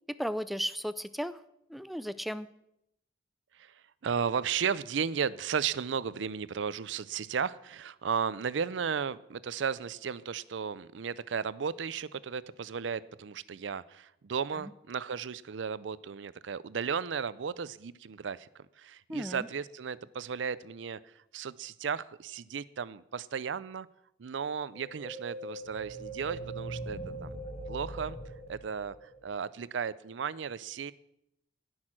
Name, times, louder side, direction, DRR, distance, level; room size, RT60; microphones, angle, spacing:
voice 1, 0.2-1.4 1.7-2.5 14.5-14.7 19.1-19.5, equal, ahead, 15 dB, 0.3 m, -35 dB
voice 2, 3.5-23.9 24.2-27.3 27.7-28.2 28.5-30.9, right 6 dB, 85° right, 19 dB, 0.5 m, -35 dB
sound 1, 24.7-29.4, right 2 dB, 35° left, 1.9 m, -41 dB
17.5 x 6.4 x 6.0 m, 0.82 s
head